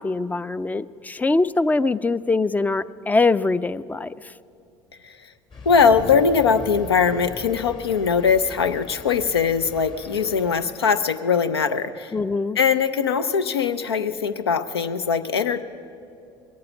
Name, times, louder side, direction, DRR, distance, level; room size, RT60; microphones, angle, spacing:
voice 1, 0.0-4.1 12.1-12.6, left 3 dB, 15° left, 17 dB, 0.4 m, -22 dB
sound 1, 5.5-10.7, left 4 dB, 40° left, 2.4 m, -40 dB
voice 2, 5.7-12.1 12.6-15.6, left 6 dB, 90° left, 12 dB, 0.5 m, -21 dB
21.0 x 8.7 x 5.9 m, 2.5 s
hypercardioid pair, 65°, 13 cm